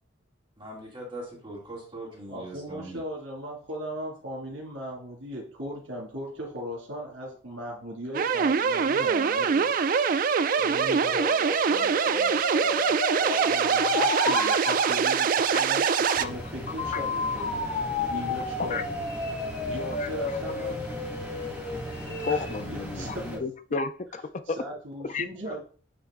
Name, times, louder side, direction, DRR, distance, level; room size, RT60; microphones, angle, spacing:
voice 1, 0.6-3.0, right 1 dB, 25° right, -5 dB, 2.2 m, -41 dB
voice 2, 2.3-9.7 10.6-17.7 18.1-18.9 19.7-20.8 22.3-23.4 24.5-25.6, equal, 90° right, -2 dB, 2.1 m, -38 dB
sound 1, 8.1-16.3, right 6 dB, 45° right, 0.3 m, -24 dB
sound 2, 9.4-14.6 16.8-22.6, left 3 dB, 60° left, 2.6 m, -33 dB
sound 3, 16.1-23.4, equal, 10° right, 1.7 m, -38 dB
voice 3, 16.7-17.0 18.6-18.8 20.0-20.4 22.2-24.6 25.0-25.2, left 4 dB, 40° left, 10 dB, 0.4 m, -32 dB
8.7 x 3.0 x 3.6 m, 0.43 s
head